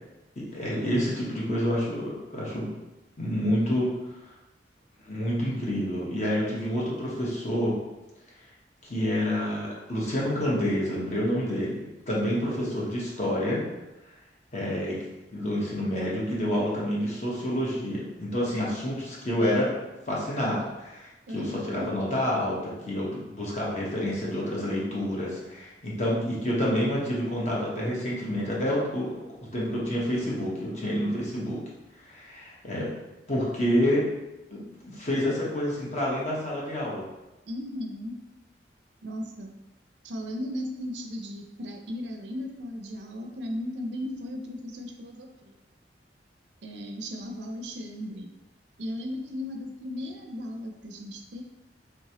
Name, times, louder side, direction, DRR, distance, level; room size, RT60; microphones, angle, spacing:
voice 1, 0.4-2.7 3.2-3.9 5.1-7.8 8.8-13.6 14.5-15.0 15.3-19.7 20.1-29.2 29.5-31.6 32.0-32.9 33.3-34.0 34.5-37.1, equal, 40° left, -5 dB, 0.9 m, -28 dB
voice 2, 21.3-21.9 37.5-38.2 39.0-39.5 40.0-45.5 46.6-48.3 48.8-51.4, left 1 dB, 80° right, 3 dB, 0.5 m, -36 dB
3.3 x 2.9 x 2.8 m, 1.0 s
head